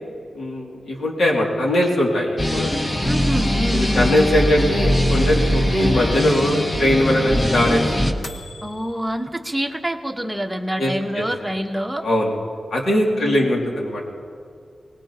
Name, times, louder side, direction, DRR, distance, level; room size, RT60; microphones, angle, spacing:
voice 1, 0.3-2.7 3.7-7.8 10.8-11.2 12.0-12.4 12.7-14.1, left 1 dB, 85° left, -2 dB, 2.4 m, -20 dB
sound 1, 2.4-8.1, equal, 20° left, 1.0 m, -21 dB
sound 2, 2.5-9.0, left 2 dB, 55° left, 1.0 m, -34 dB
voice 2, 3.0-4.2 8.6-12.0 13.2-13.5, equal, 5° right, 3 dB, 1.1 m, -26 dB
23.5 x 19.5 x 2.9 m, 2.3 s
wide cardioid pair, 95°, 0 cm